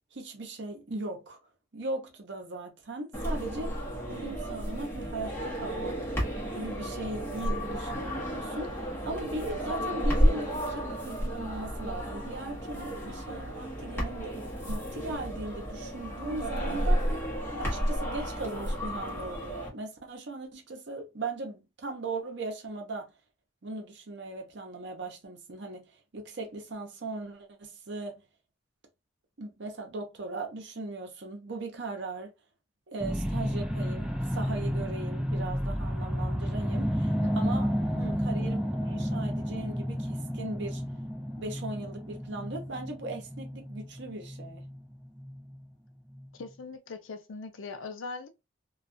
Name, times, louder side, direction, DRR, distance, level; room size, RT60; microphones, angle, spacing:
voice 1, 0.1-1.4 1.7-6.0 6.5-17.0 17.6-23.1 23.6-28.2 29.4-32.3 32.9-40.8 41.4-44.6, right 2 dB, 60° right, 0.7 m, -38 dB
sound 1, 3.1-19.7, equal, 10° left, 0.9 m, -32 dB
sound 2, 33.0-45.6 46.1-46.3, equal, 5° right, 0.4 m, -31 dB
voice 2, 46.3-48.3, left 4 dB, 90° left, 0.5 m, -41 dB
2.3 x 2.3 x 2.5 m
head